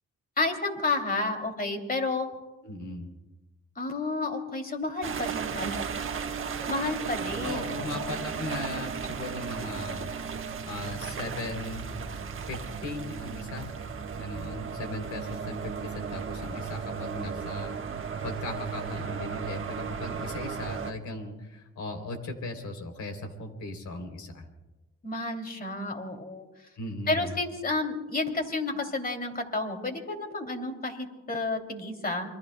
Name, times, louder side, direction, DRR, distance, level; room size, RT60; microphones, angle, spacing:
voice 1, 0.4-2.3 3.8-5.9 6.7-8.3 25.0-26.5 27.1-32.3, left 3 dB, 30° left, 4 dB, 2.8 m, -31 dB
voice 2, 2.6-3.2 7.4-10.1 10.7-11.9 12.5-13.8 14.2-24.5 26.8-27.3, left 2 dB, 70° left, 5 dB, 3.3 m, -38 dB
sound 1, 5.0-20.9, right 6 dB, 45° right, 1.3 m, -35 dB
27.5 x 23.5 x 2.2 m, 1.1 s
cardioid pair, 90°, 30 cm